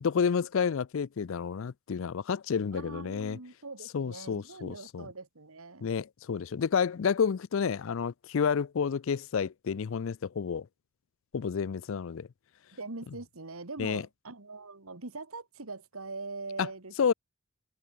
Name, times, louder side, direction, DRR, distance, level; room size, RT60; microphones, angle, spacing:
voice 1, 0.0-3.4 3.9-5.1 5.8-10.7 11.3-12.3 13.8-14.1 16.6-16.7 17.0-17.1, left 6 dB, 60° left, 0.4 m, -30 dB
voice 2, 2.7-5.9 12.7-17.1, right 3 dB, 75° right, 1.9 m, -42 dB
head